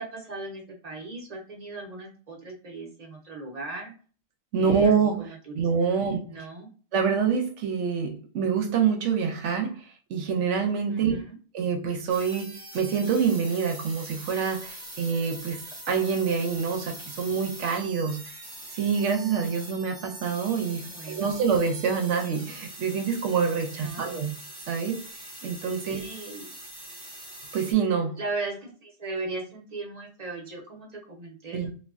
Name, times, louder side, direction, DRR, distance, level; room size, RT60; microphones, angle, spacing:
voice 1, 0.0-3.9 4.5-6.7 10.9-11.4 20.7-21.3 23.7-24.3 25.8-26.5 28.2-31.7, right 3 dB, 40° right, 0 dB, 0.9 m, -38 dB
voice 2, 4.5-6.4 6.9-9.8 10.1-11.2 11.5-18.4 18.7-24.3 24.7-25.0 25.4-26.0 27.5-28.2 31.5-31.7, right 6 dB, 80° right, 5 dB, 0.9 m, -26 dB
sound 1, 12.1-27.7, right 1 dB, 20° right, 0.6 m, -43 dB
3.2 x 2.2 x 2.4 m, 0.39 s
omnidirectional pair, 1.2 m